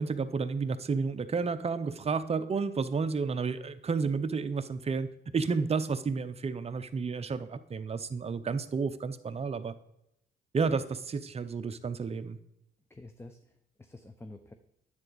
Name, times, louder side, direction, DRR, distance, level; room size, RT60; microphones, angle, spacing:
voice 1, 0.0-9.7 10.5-12.4, right 5 dB, 30° right, 10 dB, 0.6 m, -31 dB
voice 2, 12.9-14.5, left 2 dB, 10° left, 8 dB, 0.6 m, -49 dB
9.7 x 7.9 x 4.0 m, 0.80 s
cardioid pair, 90°, 20 cm